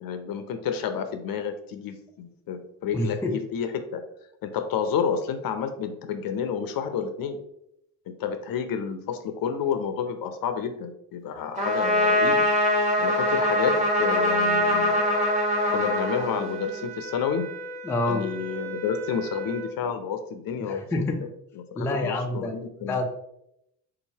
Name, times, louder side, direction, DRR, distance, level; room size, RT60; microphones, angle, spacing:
voice 1, 0.0-4.0 4.4-7.4 8.1-12.5 13.0-15.0 15.7-17.5 18.1-21.3 21.7-23.0, left 7 dB, 50° left, 8 dB, 0.6 m, -30 dB
voice 2, 2.9-3.3 17.8-18.2 20.6-21.2 21.8-22.5 22.8-23.1, left 2 dB, 5° left, 3 dB, 0.3 m, -27 dB
Trumpet, 11.6-16.8, left 1 dB, 15° right, 1.3 m, -23 dB
sound 1, 14.6-19.8, right 3 dB, 35° right, 1.3 m, -39 dB
3.8 x 2.8 x 2.7 m, 0.80 s
hypercardioid pair, 55°, 45 cm